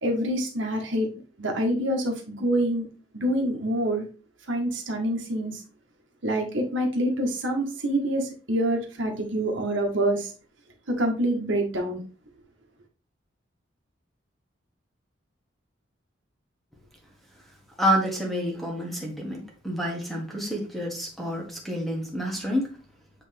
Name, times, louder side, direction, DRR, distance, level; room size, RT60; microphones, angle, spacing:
voice 1, 0.0-1.1 1.4-2.8 3.1-4.0 4.5-5.6 6.2-10.3 10.9-12.0, right 1 dB, 80° right, 1.5 m, -26 dB
voice 2, 17.8-22.7, equal, ahead, 1.5 m, -28 dB
8.3 x 3.3 x 3.4 m
head